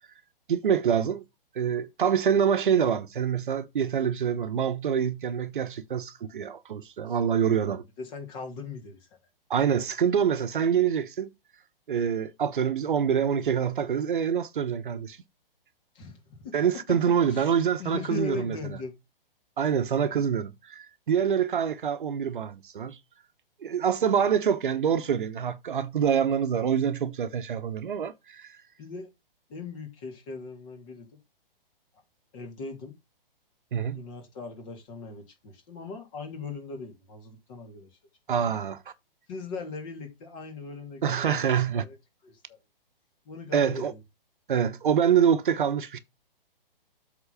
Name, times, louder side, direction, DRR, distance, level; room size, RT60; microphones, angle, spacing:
voice 1, 0.5-1.2 1.5-7.8 9.5-11.3 11.9-15.2 16.5-18.8 19.6-23.0 23.6-28.5 33.7-34.0 38.3-38.8 41.0-41.8 43.5-43.9 44.5-46.0, right 8 dB, 60° right, 1.0 m, -26 dB
voice 2, 7.1-9.2 15.9-16.5 17.2-19.0 28.8-29.1 29.5-31.2 32.3-32.9 33.9-37.9 38.4-38.5 39.3-41.4 41.7-42.0 42.2-42.6 43.2-44.0, left 4 dB, 35° left, 3.0 m, -40 dB
8.0 x 4.0 x 5.5 m
figure-of-eight pair, 125°, 29 cm